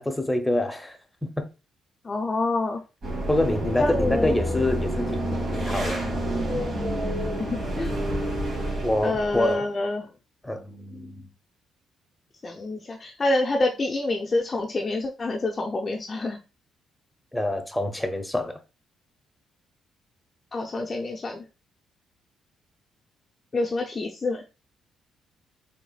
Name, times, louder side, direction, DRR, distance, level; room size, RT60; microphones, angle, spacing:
voice 1, 0.0-1.5 3.3-6.0 8.8-9.7 10.4-11.3 17.3-18.6, left 1 dB, 10° left, 0.8 m, -26 dB
voice 2, 2.0-2.8 3.8-4.4 7.4-7.9 9.0-10.1 12.4-16.4 20.5-21.4 23.5-24.4, left 2 dB, 35° left, 0.6 m, -27 dB
sound 1, 3.0-9.5, right 1 dB, 50° right, 2.4 m, -28 dB
4.7 x 3.5 x 2.3 m
cardioid pair, 90°, 0 cm